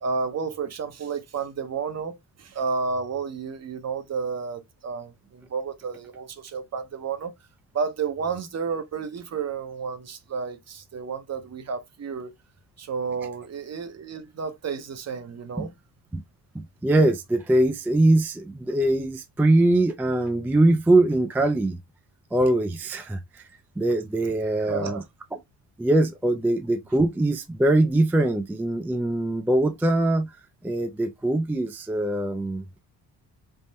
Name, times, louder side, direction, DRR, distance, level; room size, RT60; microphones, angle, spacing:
voice 1, 0.0-7.3 7.7-12.3 12.8-15.7 24.6-25.0, right 5 dB, 40° right, 0.8 m, -31 dB
voice 2, 16.5-21.8 22.3-23.4 23.8-25.0 25.8-30.3 30.6-32.8, right 1 dB, 5° right, 0.3 m, -22 dB
3.5 x 2.0 x 4.0 m
cardioid pair, 95°, 40 cm